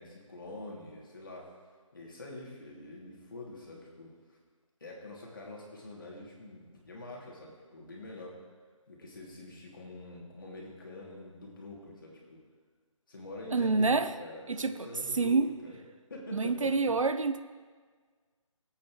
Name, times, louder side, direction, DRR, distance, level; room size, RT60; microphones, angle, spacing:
voice 1, 0.0-1.5 1.9-4.4 4.8-8.4 8.9-12.4 13.1-15.8 16.1-16.9, left 2 dB, 40° left, -3 dB, 2.6 m, -45 dB
voice 2, 13.5-14.1 14.6-14.8 15.1-15.5 16.3-17.4, right 3 dB, 70° right, 11 dB, 0.7 m, -27 dB
19.0 x 8.5 x 3.1 m, 1.5 s
hypercardioid pair, 180°, 17 cm